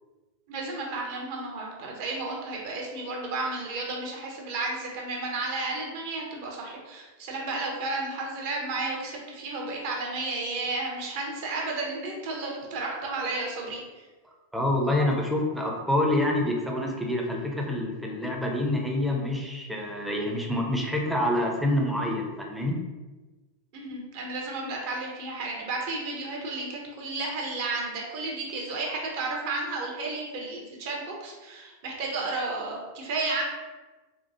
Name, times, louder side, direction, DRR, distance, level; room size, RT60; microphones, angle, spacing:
voice 1, 0.5-13.8 23.7-33.4, right 3 dB, 50° right, -1 dB, 0.9 m, -32 dB
voice 2, 14.5-22.8, left 1 dB, 5° right, 0 dB, 0.6 m, -27 dB
4.2 x 2.3 x 2.7 m, 1.2 s
figure-of-eight pair, 90°, 0 cm